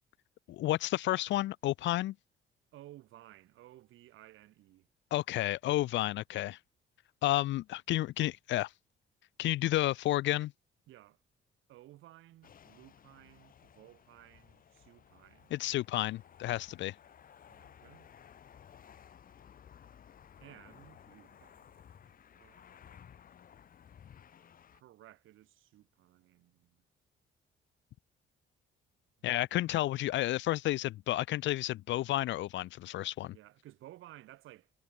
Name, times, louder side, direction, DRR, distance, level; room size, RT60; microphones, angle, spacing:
voice 1, 0.5-2.1 5.1-6.6 7.2-8.7 9.4-10.5 15.5-16.9 29.2-33.4, left 15 dB, 70° left, 0.4 m, -31 dB
voice 2, 2.7-4.9 10.9-11.2 11.7-15.5 17.5-18.1 20.4-22.8 24.7-26.8 29.5-29.8 33.3-34.7, right 15 dB, 85° right, 1.4 m, -56 dB
sound 1, 12.4-24.8, left 8 dB, 45° left, 0.8 m, -57 dB
cardioid pair, 90°, 20 cm